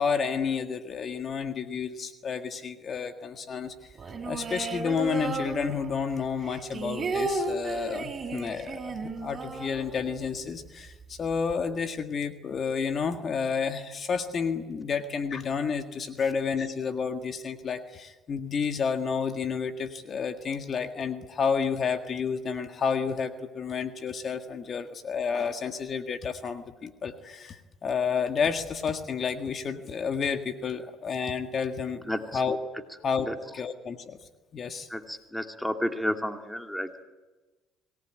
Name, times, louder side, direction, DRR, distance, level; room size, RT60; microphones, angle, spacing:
voice 1, 0.0-3.9 4.2-32.0 32.3-32.6 33.0-34.2 34.5-34.9, left 6 dB, 45° left, 7 dB, 1.8 m, -30 dB
sound 1, 4.0-6.1 6.4-10.4 10.7-10.8 11.0-11.5, right 3 dB, 35° right, 4.4 m, -33 dB
voice 2, 32.0-32.4 33.3-33.4 34.9-37.0, equal, 5° left, 5 dB, 2.4 m, -31 dB
25.5 x 18.5 x 9.2 m, 1.2 s
supercardioid pair, 85°, 0 cm